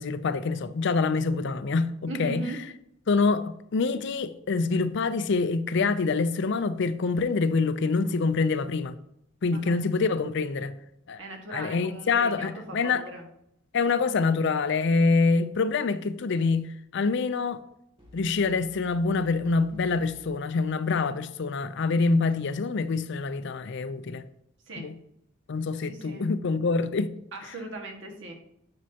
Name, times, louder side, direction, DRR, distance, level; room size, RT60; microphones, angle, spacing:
voice 1, 0.0-2.4 3.1-9.0 9.4-10.8 11.1-11.2 11.5-13.0 13.7-16.7 16.9-17.6 18.1-24.2 24.8-24.9 25.5-27.1, left 4 dB, 60° left, 0.5 m, -26 dB
voice 2, 2.1-2.6 9.5-9.8 11.2-13.3 24.7-24.9 25.9-26.3 27.3-28.3, right 2 dB, 65° right, 1.6 m, -38 dB
sound 1, 18.0-21.9, left 1 dB, 25° right, 2.3 m, -54 dB
10.5 x 6.3 x 2.8 m
head